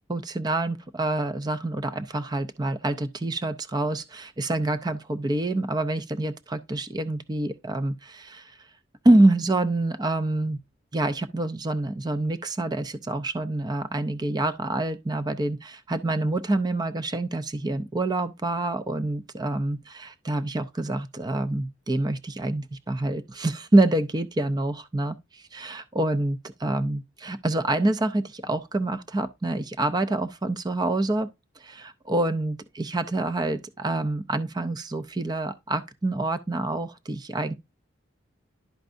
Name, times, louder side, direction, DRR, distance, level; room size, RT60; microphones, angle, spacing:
voice 1, 0.1-8.5 9.0-10.6 10.9-31.3 31.6-37.5, right 2 dB, 20° right, 0.5 m, -26 dB
11.5 x 4.5 x 2.5 m
head